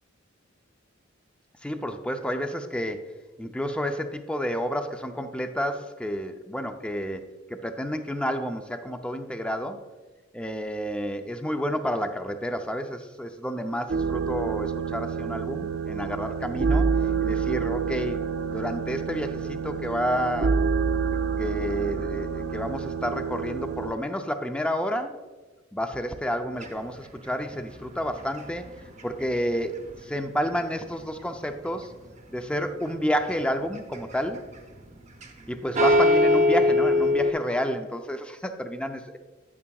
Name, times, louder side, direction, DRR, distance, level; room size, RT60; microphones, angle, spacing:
voice 1, 1.6-3.1 3.4-9.8 10.3-16.9 17.2-18.2 18.5-20.6 21.1-25.2 25.7-28.7 29.0-31.9 32.3-34.5 35.5-39.2, equal, 5° left, 7 dB, 0.4 m, -30 dB
sound 1, 13.9-23.9, right 5 dB, 55° right, 0.4 m, -28 dB
sound 2, 26.6-30.7 31.0-31.8 32.3-32.9 33.2-35.4 35.7-37.3, left 1 dB, 40° right, 0.8 m, -24 dB
9.3 x 8.5 x 2.3 m, 1.2 s
head